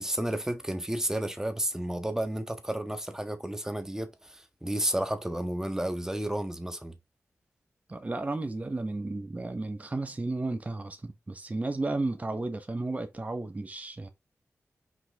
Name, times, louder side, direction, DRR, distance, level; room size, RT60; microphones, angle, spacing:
voice 1, 0.0-6.9, right 1 dB, 10° right, 1.6 m, -32 dB
voice 2, 7.9-14.1, right 2 dB, 30° right, 1.3 m, -33 dB
6.0 x 4.9 x 3.7 m
cardioid pair, 65°, 5 cm